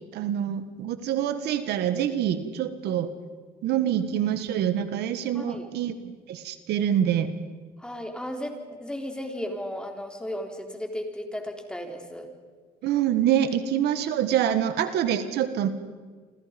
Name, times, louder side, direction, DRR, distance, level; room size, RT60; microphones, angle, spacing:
voice 1, 0.1-3.1 3.6-5.9 6.3-7.3 12.8-15.7, right 10 dB, 80° right, 11 dB, 1.8 m, -25 dB
voice 2, 5.3-5.7 7.8-12.3 14.4-14.5, equal, 5° left, 3 dB, 4.0 m, -35 dB
28.5 x 26.0 x 5.4 m, 1.5 s
cardioid pair, 110°, 17 cm